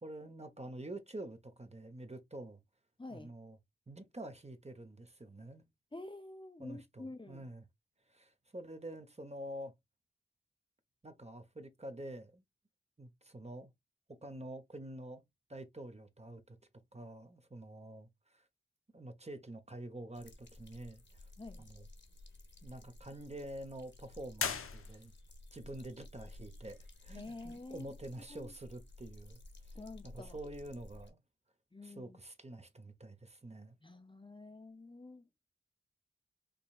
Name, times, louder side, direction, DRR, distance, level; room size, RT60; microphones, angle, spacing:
voice 1, 0.0-2.6 3.1-3.6 3.9-5.6 6.6-7.7 8.1-9.7 11.0-12.4 13.0-13.7 14.2-15.2 15.5-16.6 16.9-18.5 18.9-21.3 21.6-21.8 22.6-25.1 25.5-29.4 30.0-31.2 31.8-33.8, right 1 dB, 30° right, 1.0 m, -47 dB
voice 2, 3.0-3.3 5.9-7.5 21.4-21.6 27.1-28.0 28.3-28.5 29.7-30.4 31.7-32.2 33.8-35.2, left 2 dB, 25° left, 0.6 m, -49 dB
sound 1, 20.1-31.1, left 1 dB, 60° left, 1.2 m, -54 dB
sound 2, 24.3-25.4, left 6 dB, 85° left, 0.6 m, -38 dB
5.2 x 3.1 x 2.4 m
wide cardioid pair, 45°, 21 cm